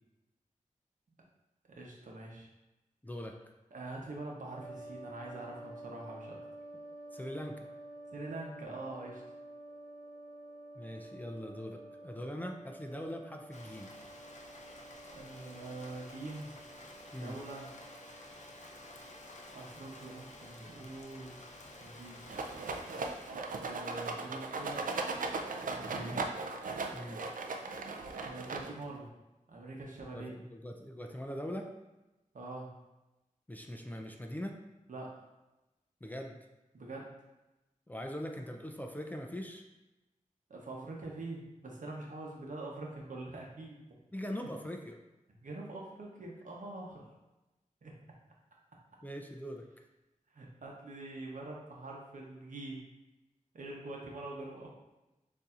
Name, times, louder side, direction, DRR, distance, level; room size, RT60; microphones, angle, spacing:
voice 1, 1.7-2.5 3.7-6.4 8.1-9.2 15.1-16.5 17.1-17.7 19.5-21.4 21.8-22.5 23.5-24.8 25.7-26.4 28.2-29.1 29.5-30.4 32.3-32.7 34.9-35.1 36.7-37.1 40.5-44.0 45.4-47.1 47.8-47.9 50.3-52.8 53.5-54.7, right 2 dB, 75° right, -2 dB, 0.9 m, -44 dB
voice 2, 3.0-3.4 7.1-7.7 10.8-13.9 17.1-17.4 25.9-26.3 26.9-27.2 30.1-31.7 33.5-34.6 36.0-36.4 37.9-39.6 44.1-45.0 49.0-49.6, equal, 10° left, 2 dB, 0.4 m, -41 dB
sound 1, 4.5-21.8, right 1 dB, 25° right, 1.5 m, -51 dB
Rain, 13.5-23.3, left 1 dB, 60° left, 0.6 m, -52 dB
Rattle, 22.3-29.0, right 3 dB, 90° right, 0.4 m, -38 dB
6.8 x 2.7 x 2.4 m, 1.0 s
wide cardioid pair, 90°, 14 cm